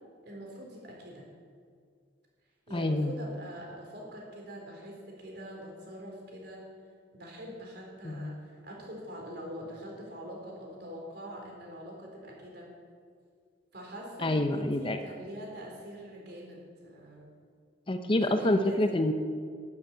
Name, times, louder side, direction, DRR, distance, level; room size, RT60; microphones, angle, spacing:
voice 1, 0.2-1.3 2.7-6.6 7.1-12.7 13.7-17.3 18.2-19.0, equal, 60° right, -1 dB, 4.2 m, -44 dB
voice 2, 2.7-3.2 8.0-8.4 14.2-15.0 17.9-19.1, left 1 dB, 30° left, 7 dB, 0.7 m, -27 dB
13.0 x 8.3 x 8.9 m, 2.1 s
head